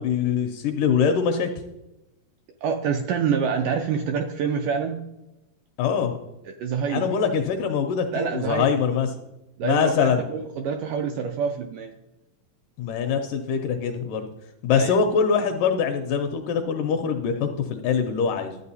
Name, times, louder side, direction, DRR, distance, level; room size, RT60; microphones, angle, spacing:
voice 1, 0.0-1.5 5.8-6.2 6.9-9.1 9.6-10.3 12.8-14.3 14.6-18.6, left 6 dB, 85° left, 6 dB, 2.0 m, -23 dB
voice 2, 2.6-5.0 6.5-7.1 8.1-8.7 9.6-11.9 14.7-14.9, right 6 dB, 80° right, 4 dB, 1.9 m, -26 dB
12.5 x 8.2 x 2.8 m, 0.95 s
omnidirectional pair, 4.2 m